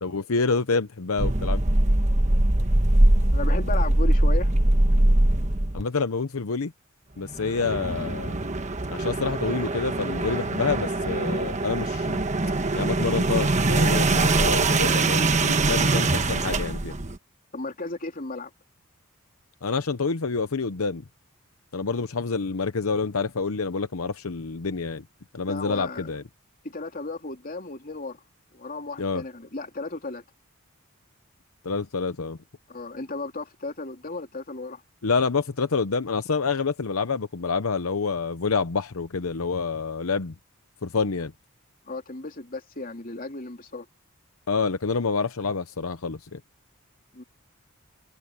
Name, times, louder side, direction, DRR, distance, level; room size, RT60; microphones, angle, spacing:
voice 1, 0.0-1.6 5.7-6.7 7.2-8.4 8.9-12.2 12.7-16.9 19.6-21.0 21.7-25.0 25.3-26.2 29.0-29.2 31.6-32.4 35.0-40.3 40.8-41.3 44.5-46.4, left 4 dB, 75° left, 0.8 m, -27 dB
sound 1, 1.2-5.8 7.3-17.2, right 2 dB, 35° right, 1.3 m, -22 dB
voice 2, 3.3-4.5 14.8-15.0 17.5-18.5 25.5-26.1 26.6-28.2 28.5-30.2 32.7-34.8 41.9-43.8 47.1-47.2, left 3 dB, 40° left, 3.1 m, -34 dB
head